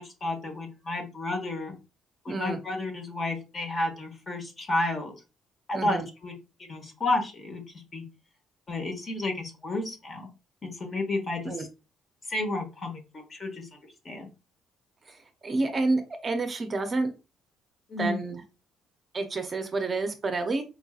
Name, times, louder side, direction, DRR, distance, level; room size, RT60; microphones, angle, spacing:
voice 1, 0.0-1.8 2.2-5.1 5.7-6.3 6.7-7.6 7.9-8.0 8.7-10.3 10.6-11.7 12.3-13.7 14.0-14.3 17.9-18.2, left 2 dB, 35° left, 4 dB, 1.1 m, -31 dB
voice 2, 2.3-2.6 5.7-6.1 11.4-11.6 15.1-17.1 18.0-18.4 19.1-20.6, right 3 dB, 30° right, 6 dB, 0.6 m, -29 dB
4.6 x 2.6 x 2.4 m, 0.29 s
cardioid pair, 120°, 0 cm